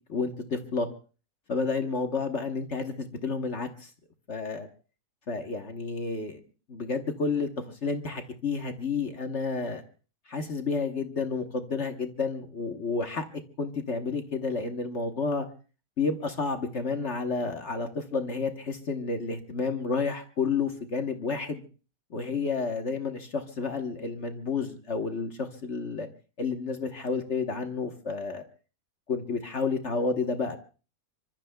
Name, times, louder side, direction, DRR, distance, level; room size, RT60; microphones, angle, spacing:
voice 1, 0.1-0.9 1.5-3.9 4.3-4.7 5.3-6.4 6.7-9.8 10.3-13.3 13.6-15.5 16.0-21.6 22.1-26.1 26.4-28.4 29.1-30.6, left 4 dB, 45° left, 5 dB, 1.4 m, -30 dB
26.0 x 24.5 x 2.3 m, 0.37 s
omnidirectional pair, 1.8 m